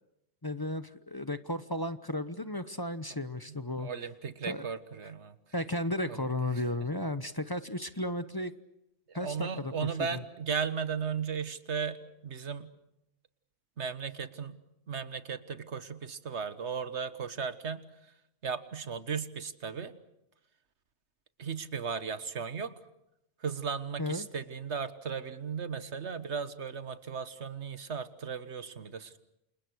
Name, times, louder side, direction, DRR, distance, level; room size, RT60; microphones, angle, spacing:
voice 1, 0.4-3.9 4.4-4.6 5.5-8.5 9.1-10.2 24.0-24.3, left 1 dB, 20° left, 12 dB, 1.0 m, -34 dB
voice 2, 3.5-5.4 6.1-6.2 9.1-12.7 13.8-14.6 14.9-17.8 18.4-19.9 21.4-22.8 23.4-29.2, right 6 dB, 85° right, 12 dB, 1.7 m, -36 dB
29.0 x 27.5 x 6.3 m, 0.84 s
omnidirectional pair, 1.1 m